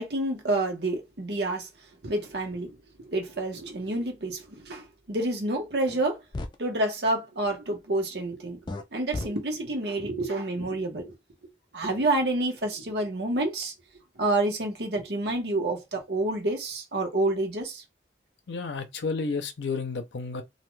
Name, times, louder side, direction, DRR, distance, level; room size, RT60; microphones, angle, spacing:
voice 1, 0.0-1.7 2.0-2.8 3.0-6.2 6.6-8.6 8.9-11.1 11.7-13.7 14.2-17.8, right 2 dB, 70° right, 1.0 m, -28 dB
sound 1, 5.9-6.0 6.3-6.6 8.7-8.8 9.1-9.3, left 2 dB, 25° left, 0.3 m, -33 dB
voice 2, 18.5-20.4, left 4 dB, 85° left, 0.5 m, -31 dB
2.6 x 2.2 x 3.1 m
head